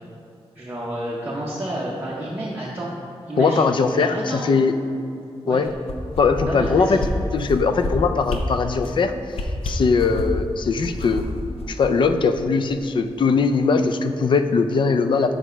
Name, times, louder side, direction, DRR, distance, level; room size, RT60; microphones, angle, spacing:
voice 1, 0.6-2.9 3.3-4.5 5.4-5.6 6.4-7.0, right 1 dB, 20° right, -6 dB, 0.7 m, -30 dB
voice 2, 3.4-4.7 5.5-5.7 6.2-7.0 7.3-9.1 9.6-11.2 11.7-15.3, left 4 dB, 50° left, 8 dB, 0.4 m, -20 dB
sound 1, 5.6-6.7 7.0-7.1 7.4-7.9 8.3-8.4 8.8-9.0 9.3-10.4 10.8-12.4 12.8-12.9, left 2 dB, 75° left, 0.8 m, -29 dB
7.1 x 4.9 x 4.4 m, 2.6 s
wide cardioid pair, 175°, 10 cm